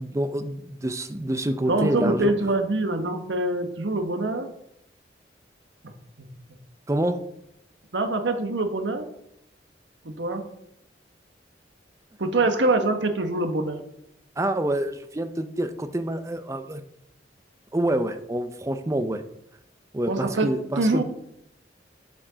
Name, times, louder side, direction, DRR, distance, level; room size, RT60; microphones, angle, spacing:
voice 1, 0.0-2.3 6.9-7.2 14.4-16.8 17.7-19.2 19.9-21.0, right 1 dB, 15° right, 9 dB, 0.5 m, -27 dB
voice 2, 1.7-4.5 5.8-5.9 6.2-6.3 7.9-9.1 10.0-10.4 12.2-13.8 20.1-20.5 20.8-21.0, right 2 dB, 85° right, 6 dB, 1.1 m, -24 dB
7.4 x 7.1 x 3.9 m, 0.77 s
head